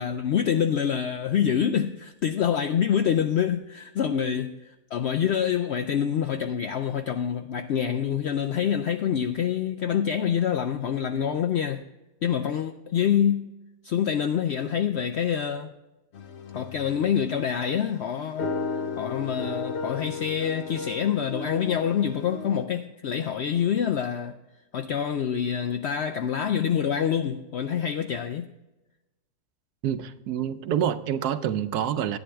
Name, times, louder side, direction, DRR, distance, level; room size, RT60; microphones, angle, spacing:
voice 1, 0.0-11.8 12.2-13.5 13.8-15.7 16.5-18.5 19.0-24.4 24.7-28.5, left 8 dB, 75° left, 0.6 m, -26 dB
sound 1, 16.1-22.6, left 4 dB, 50° left, 1.0 m, -35 dB
voice 2, 29.8-32.2, right 9 dB, 85° right, 1.2 m, -27 dB
11.0 x 9.2 x 3.4 m
omnidirectional pair, 1.6 m